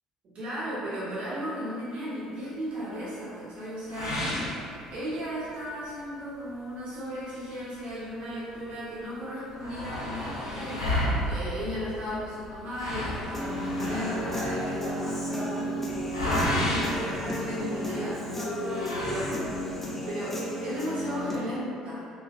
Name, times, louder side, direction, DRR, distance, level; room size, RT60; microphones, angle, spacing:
voice 1, 0.2-4.4 4.9-18.3 18.6-18.7 19.0-19.3 19.9-22.1, equal, 50° right, -8 dB, 0.6 m, -35 dB
sound 1, 3.9-5.4 5.8-5.9 6.3-6.4 7.2-8.6 8.9-9.0 9.2-17.9 18.6-19.8, left 1 dB, 85° left, 0.4 m, -32 dB
Human voice / Guitar, 13.3-21.4, equal, 10° left, 0.5 m, -33 dB
2.4 x 2.2 x 2.3 m, 2.4 s
figure-of-eight pair, 55°, 2 cm